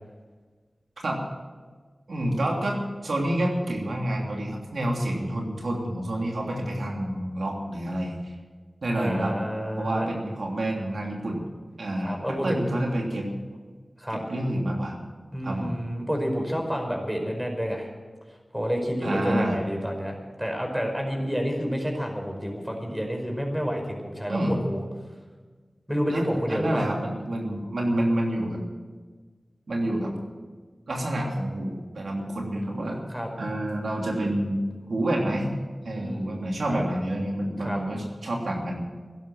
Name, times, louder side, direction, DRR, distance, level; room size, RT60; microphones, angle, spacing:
voice 1, 2.1-2.8 3.0-8.3 8.8-9.3 9.8-11.4 11.8-13.3 14.1-14.9 15.4-15.8 19.0-19.6 24.3-24.6 26.1-28.6 29.7-30.1 30.9-33.0 33.4-34.6 34.9-35.5 35.8-38.8, right 1 dB, 85° right, 0 dB, 3.1 m, -28 dB
voice 2, 9.0-10.1 12.0-12.6 14.0-14.2 15.3-17.9 18.5-24.8 25.9-26.9 33.1-33.3 36.0-36.3 36.7-36.8 37.6-37.8, equal, 10° right, 2 dB, 5.2 m, -29 dB
15.5 x 11.5 x 7.9 m, 1.4 s
cardioid pair, 40°, 0 cm